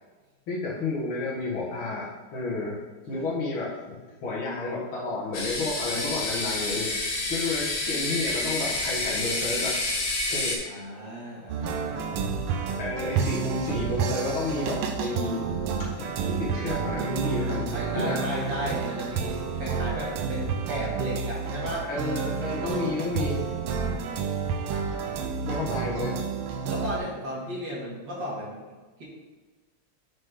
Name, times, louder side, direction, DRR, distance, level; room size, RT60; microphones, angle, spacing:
voice 1, 0.5-6.9 7.3-9.8 10.3-10.8 12.8-15.5 15.8-18.4 21.9-23.5 25.4-26.2, left 3 dB, 70° left, -4 dB, 2.4 m, -31 dB
sound 1, 5.3-10.6, left 2 dB, 55° left, 1.5 m, -29 dB
voice 2, 10.7-12.3 14.5-15.0 17.7-21.9 22.9-23.2 23.7-24.3 26.7-28.6, equal, 55° right, -5 dB, 2.5 m, -35 dB
sound 2, 11.5-27.0, right 6 dB, 85° right, 1.6 m, -30 dB
6.4 x 6.2 x 3.7 m, 1.3 s
omnidirectional pair, 2.4 m